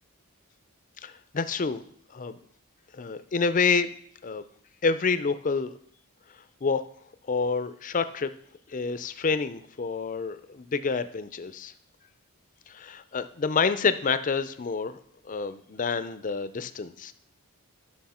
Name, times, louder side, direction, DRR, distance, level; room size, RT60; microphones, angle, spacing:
voice 1, 1.0-1.8 2.1-2.4 2.9-3.9 4.2-4.4 4.8-5.7 6.6-6.8 7.3-8.3 8.7-11.7 12.7-15.0 15.2-17.1, left 5 dB, 35° left, 12 dB, 0.5 m, -28 dB
11.5 x 6.2 x 4.3 m, 0.63 s
head